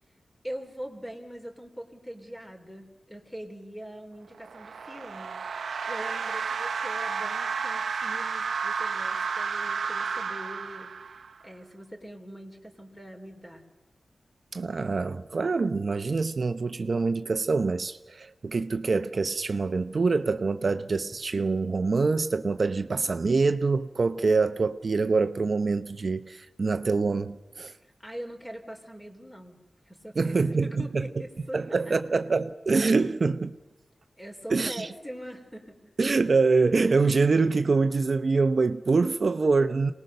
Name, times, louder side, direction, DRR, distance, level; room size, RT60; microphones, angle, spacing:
voice 1, 0.4-13.6 27.7-29.6 29.9-31.6 31.8-32.0 34.2-35.9, equal, 10° left, 3.3 m, -42 dB
sound 1, 4.3-11.4, right 5 dB, 90° right, 0.8 m, -32 dB
voice 2, 14.5-27.7 30.2-31.1 31.5-33.6 34.5-34.9 36.0-39.9, right 4 dB, 55° right, 0.7 m, -25 dB
26.5 x 19.5 x 6.6 m
wide cardioid pair, 85°, 0 cm